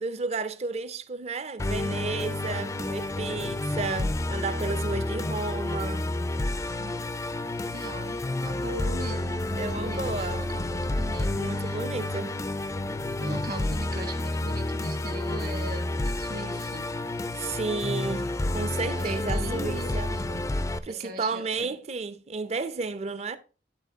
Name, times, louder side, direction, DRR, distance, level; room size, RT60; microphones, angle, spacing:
voice 1, 0.0-6.1 9.6-10.5 11.3-12.4 17.3-20.1 20.8-23.4, right 4 dB, 35° right, 0.5 m, -32 dB
Musical instrument, 1.6-20.8, left 2 dB, 15° left, 0.3 m, -30 dB
voice 2, 7.7-11.8 13.2-16.9 18.8-20.4 20.9-21.8, right 2 dB, 50° right, 1.4 m, -40 dB
10.5 x 4.3 x 3.5 m
head